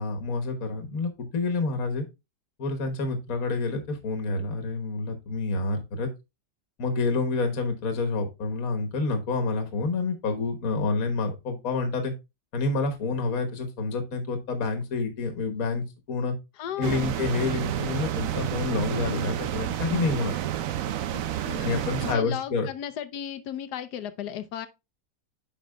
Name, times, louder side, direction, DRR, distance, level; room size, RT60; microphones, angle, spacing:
voice 1, 0.0-2.0 2.6-6.1 6.8-12.1 12.5-16.3 16.8-20.4 21.6-22.7, left 3 dB, 55° left, 1.6 m, -28 dB
voice 2, 16.6-17.1 21.1-21.6 22.0-24.7, left 10 dB, 70° left, 1.2 m, -35 dB
sound 1, 16.8-22.1, right 11 dB, 65° right, 0.8 m, -30 dB
9.3 x 5.9 x 2.3 m
omnidirectional pair, 2.0 m